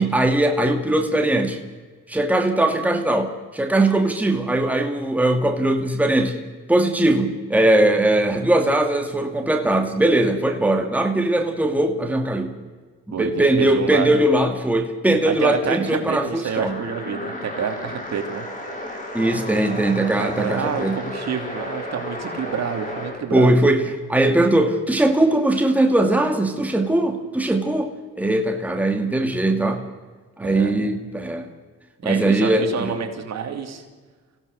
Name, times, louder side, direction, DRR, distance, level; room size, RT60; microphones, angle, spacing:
voice 1, 0.0-1.6 2.1-6.4 6.7-12.5 13.2-16.8 19.1-21.0 23.3-23.8 24.1-27.9 28.2-29.8 30.4-31.5 32.0-32.9, right 1 dB, 5° right, 4 dB, 2.2 m, -20 dB
voice 2, 13.1-14.1 15.3-18.4 20.2-23.7 30.4-30.7 32.0-33.8, right 7 dB, 60° right, 5 dB, 3.0 m, -28 dB
sound 1, 16.4-23.2, equal, 25° left, 6.8 m, -33 dB
25.0 x 16.5 x 6.7 m, 1.4 s
cardioid pair, 90°, 30 cm